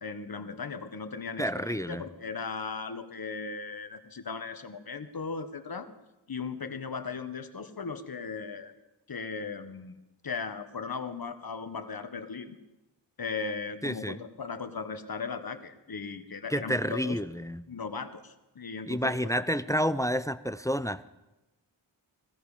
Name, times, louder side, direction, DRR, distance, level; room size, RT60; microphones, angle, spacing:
voice 1, 0.0-5.9 6.3-8.7 9.1-10.0 10.2-12.6 13.2-17.2 17.7-19.1, left 5 dB, 50° left, 9 dB, 1.4 m, -37 dB
voice 2, 1.4-2.0 13.8-14.2 16.5-17.6 18.9-21.1, equal, 5° left, 16 dB, 0.5 m, -29 dB
17.0 x 14.0 x 5.0 m, 1.0 s
cardioid pair, 40°, 47 cm